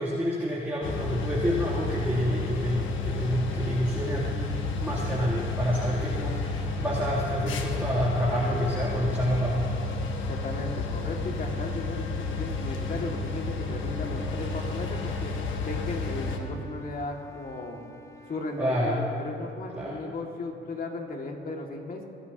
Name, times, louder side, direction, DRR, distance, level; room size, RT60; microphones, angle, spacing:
voice 1, 0.0-9.7 18.6-19.0 19.7-20.0, equal, 10° right, -9 dB, 3.2 m, -28 dB
sound 1, 0.8-16.4, left 3 dB, 80° left, 1.5 m, -31 dB
voice 2, 10.3-15.4 15.6-17.8 18.3-22.0, left 2 dB, 45° left, 1 dB, 2.4 m, -36 dB
Wind instrument woodwind instrument, 14.1-18.7, left 1 dB, 15° left, 1.2 m, -50 dB
26.0 x 14.0 x 3.0 m, 2.7 s
cardioid pair, 90°, 20 cm